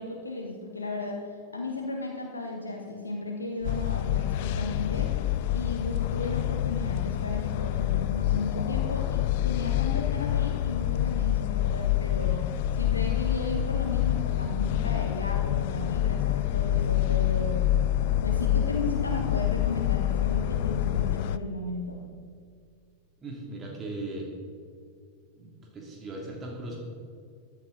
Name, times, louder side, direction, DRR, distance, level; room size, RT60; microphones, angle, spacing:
voice 1, 0.0-5.1 5.5-12.5 12.7-17.7 18.2-22.1, left 2 dB, 80° left, 1 dB, 1.3 m, -35 dB
sound 1, 3.6-21.4, left 13 dB, 50° left, 0.4 m, -27 dB
sound 2, 3.6-16.5, right 2 dB, ahead, 1.1 m, -48 dB
voice 2, 23.2-24.3 25.4-26.8, right 2 dB, 20° right, -1 dB, 2.6 m, -38 dB
15.0 x 11.0 x 3.9 m, 2.2 s
figure-of-eight pair, 90°, 0 cm